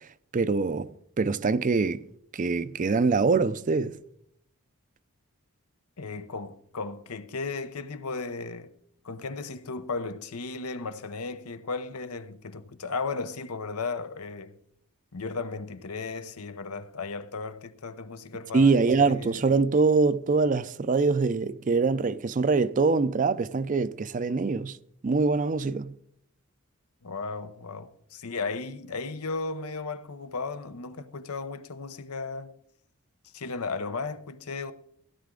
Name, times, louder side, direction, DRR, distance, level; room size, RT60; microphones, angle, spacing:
voice 1, 0.3-0.9 1.2-2.1 2.3-3.9 18.5-24.8 25.0-25.9, right 4 dB, 35° right, 0.4 m, -24 dB
voice 2, 6.0-8.7 9.0-14.5 15.1-19.4 27.0-32.5 33.3-34.7, left 4 dB, 80° left, 0.8 m, -35 dB
16.0 x 11.0 x 3.8 m
head